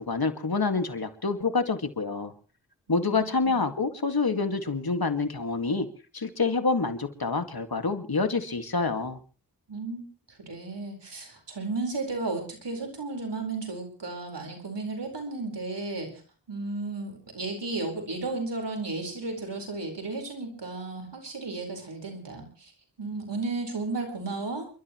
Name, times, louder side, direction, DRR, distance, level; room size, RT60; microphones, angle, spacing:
voice 1, 0.0-2.3 2.9-5.9 6.1-9.2, left 4 dB, 60° left, 7 dB, 2.1 m, -27 dB
voice 2, 2.9-3.6 9.7-10.0 10.3-16.1 16.5-22.7 23.0-24.7, right 3 dB, 80° right, 3 dB, 4.7 m, -34 dB
29.0 x 12.5 x 3.1 m, 0.37 s
cardioid pair, 40°, 41 cm